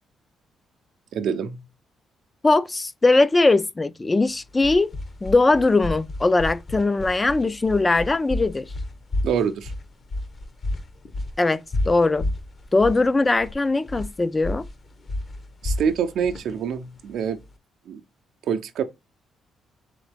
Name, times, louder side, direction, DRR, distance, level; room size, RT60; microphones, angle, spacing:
voice 1, 1.1-1.6 9.2-9.7 15.6-17.4 17.9-18.0 18.5-18.8, right 7 dB, 75° right, 0.5 m, -25 dB
voice 2, 2.4-4.9 5.2-8.7 11.4-12.3 12.7-14.7, left 3 dB, 20° left, 0.3 m, -20 dB
sound 1, 4.3-17.5, left 1 dB, 45° left, 0.7 m, -32 dB
3.8 x 3.6 x 3.4 m
cardioid pair, 90°, 0 cm